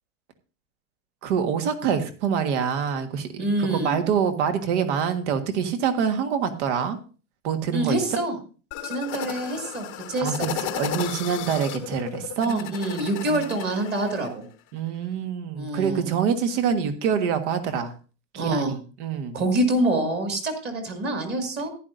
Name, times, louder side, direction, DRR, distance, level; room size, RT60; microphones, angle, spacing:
voice 1, 1.2-7.0 7.4-8.0 10.2-12.7 13.3-13.6 14.7-17.9 18.3-19.4, right 7 dB, 50° right, 8 dB, 1.7 m, -26 dB
voice 2, 3.4-4.0 7.7-8.4 8.8-10.5 12.5-14.4 15.6-16.1 18.3-18.8 19.3-21.7, right 1 dB, 20° right, 4 dB, 2.2 m, -26 dB
sound 1, 8.7-14.3, left 10 dB, 25° left, 1.0 m, -34 dB
14.5 x 10.5 x 2.6 m, 0.36 s
supercardioid pair, 155°, 45 cm